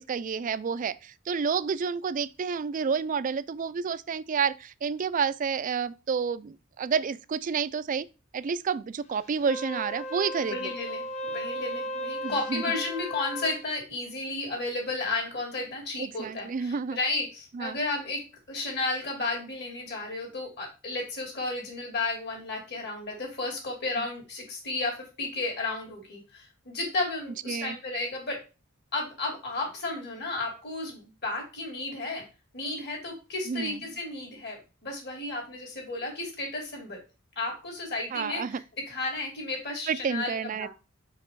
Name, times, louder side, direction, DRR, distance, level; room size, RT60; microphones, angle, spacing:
voice 1, 0.0-8.1 8.3-10.7 12.2-12.6 16.0-17.0 17.5-17.8 27.5-27.8 33.5-33.8 38.1-38.6 39.9-40.7, right 6 dB, 40° right, 0.3 m, -30 dB
Wind instrument woodwind instrument, 9.3-13.6, equal, 35° left, 1.0 m, -35 dB
voice 2, 10.4-18.2 18.5-28.4 28.9-32.2 32.5-37.0 37.4-40.7, left 2 dB, 55° left, 2.7 m, -33 dB
5.3 x 5.0 x 4.6 m
head